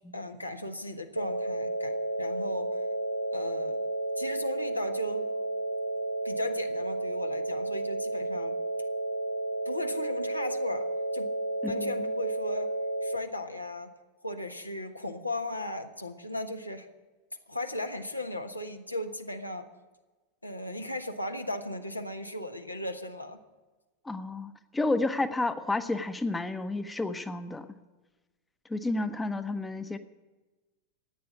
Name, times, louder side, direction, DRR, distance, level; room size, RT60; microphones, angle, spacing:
voice 1, 0.1-2.9 3.3-3.9 4.2-5.3 6.2-8.6 9.6-10.9 11.1-11.3 11.6-12.7 13.0-13.9 14.2-16.9 17.5-19.7 20.4-23.4, left 1 dB, 85° left, 6 dB, 1.2 m, -36 dB
sound 1, 1.2-13.2, right 1 dB, 85° right, 0.6 m, -32 dB
voice 2, 11.6-12.1 24.0-27.7 28.7-30.0, left 2 dB, 10° left, 11 dB, 0.8 m, -31 dB
14.0 x 9.5 x 9.7 m, 1.2 s
figure-of-eight pair, 90°, 0 cm